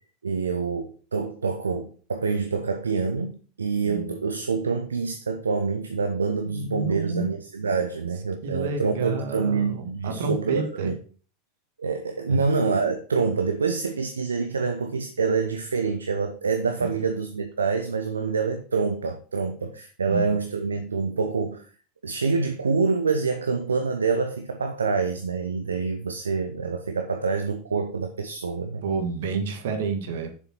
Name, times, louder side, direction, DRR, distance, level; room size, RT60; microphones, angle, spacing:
voice 1, 0.2-11.0 11.8-21.7 22.0-28.8, right 4 dB, 75° right, 0.7 m, -26 dB
voice 2, 6.5-7.3 8.4-10.9 12.3-12.4 16.8-16.9 20.0-20.3 28.8-30.3, right 4 dB, 60° right, 1.6 m, -30 dB
7.1 x 6.8 x 4.3 m
figure-of-eight pair, 80°, 0 cm